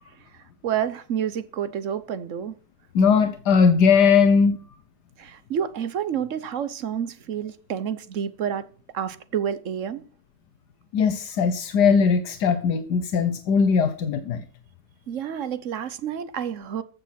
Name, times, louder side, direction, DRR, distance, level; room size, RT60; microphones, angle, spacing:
voice 1, 0.6-2.5 5.2-8.7 8.9-10.0 15.1-16.8, right 8 dB, 55° right, 1.2 m, -29 dB
voice 2, 2.9-4.6 10.9-14.4, left 6 dB, 80° left, 1.5 m, -19 dB
14.5 x 6.8 x 5.8 m
omnidirectional pair, 1.7 m